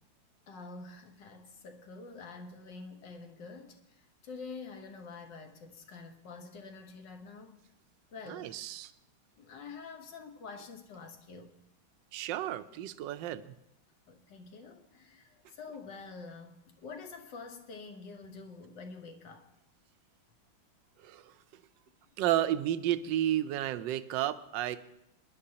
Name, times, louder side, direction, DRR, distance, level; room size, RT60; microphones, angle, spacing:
voice 1, 0.5-3.8 4.2-7.5 8.1-8.6 9.4-11.5 14.1-19.5, left 4 dB, 65° left, 1.7 m, -47 dB
voice 2, 8.3-8.9 12.1-13.5 21.0-21.3 22.2-24.8, right 12 dB, 75° right, 1.2 m, -32 dB
23.0 x 10.5 x 2.8 m
omnidirectional pair, 2.2 m